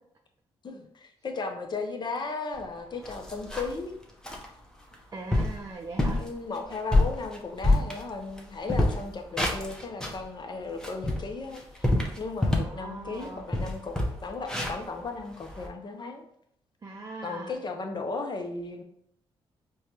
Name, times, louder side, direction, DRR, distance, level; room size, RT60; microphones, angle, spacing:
voice 1, 0.6-4.0 6.2-11.9 12.2-14.0 14.2-16.3 17.2-18.8, left 3 dB, 40° left, 4 dB, 0.7 m, -36 dB
sound 1, 2.6-2.7 3.0-3.8 4.2-4.5 4.9-5.0 5.3-5.6 6.0-6.3 6.7-8.4 8.7-10.2 10.7-12.8 13.2-13.3 13.5-15.7, left 1 dB, 5° left, 0.8 m, -26 dB
voice 2, 5.1-6.2 12.5-13.4 16.8-17.6, right 3 dB, 30° right, 1 dB, 0.5 m, -40 dB
4.5 x 2.3 x 2.8 m, 0.69 s
supercardioid pair, 60°, 11 cm